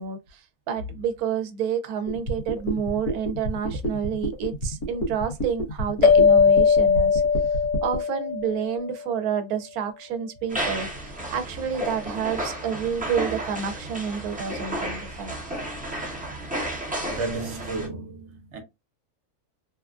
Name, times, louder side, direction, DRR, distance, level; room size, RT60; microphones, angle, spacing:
voice 1, 0.0-7.2 7.8-15.4, right 7 dB, 80° right, 1.0 m, -29 dB
sound 1, 2.1-8.0, right 1 dB, 85° left, 1.4 m, -29 dB
sound 2, 6.0-9.0, left 5 dB, 65° left, 0.8 m, -19 dB
sound 3, 10.5-17.9, right 1 dB, 10° right, 0.6 m, -32 dB
voice 2, 17.0-18.6, right 3 dB, 55° right, 1.0 m, -33 dB
3.3 x 2.4 x 2.3 m
omnidirectional pair, 1.6 m